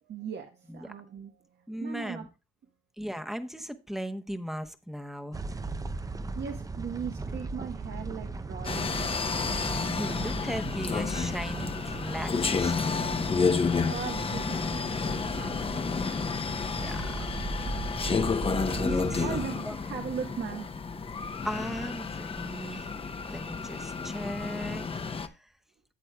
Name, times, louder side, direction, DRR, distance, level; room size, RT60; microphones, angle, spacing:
voice 1, 0.0-2.3 5.9-9.2 13.9-16.4 19.2-20.7, right 7 dB, 60° right, 4 dB, 1.1 m, -39 dB
voice 2, 1.7-2.3 3.0-5.4 9.6-13.1 16.7-17.3 18.8-19.3 19.6-19.7 21.4-22.9 23.3-25.5, equal, ahead, 7 dB, 0.9 m, -37 dB
sound 1, 5.3-19.5, right 3 dB, 15° right, 0.5 m, -37 dB
sound 2, 8.6-25.3, left 5 dB, 30° left, 0.7 m, -31 dB
12.5 x 8.0 x 2.2 m, 0.28 s
cardioid pair, 90°, 20 cm